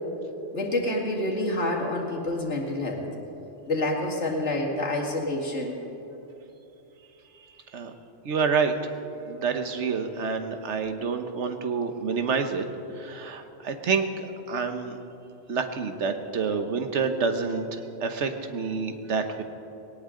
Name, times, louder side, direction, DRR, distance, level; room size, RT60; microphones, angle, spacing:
voice 1, 0.5-3.1 3.7-5.8, left 1 dB, 75° left, -1 dB, 2.5 m, -28 dB
voice 2, 8.2-8.8 9.2-12.6 12.9-15.0 15.5-19.4, right 5 dB, 75° right, 7 dB, 1.3 m, -28 dB
20.0 x 18.0 x 3.8 m, 3.0 s
omnidirectional pair, 1.2 m